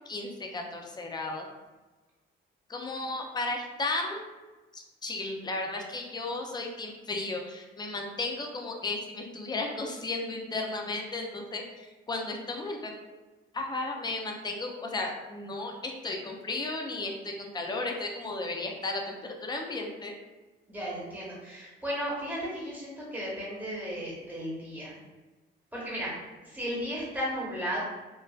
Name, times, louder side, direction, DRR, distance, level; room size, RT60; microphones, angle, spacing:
voice 1, 0.1-1.5 2.7-4.2 4.7-12.9 13.5-20.1, left 2 dB, 20° left, 1 dB, 0.4 m, -34 dB
voice 2, 20.7-24.9 25.7-26.1 26.4-27.8, equal, 10° right, -7 dB, 1.1 m, -35 dB
2.4 x 2.3 x 2.3 m, 1.2 s
cardioid pair, 90°, 20 cm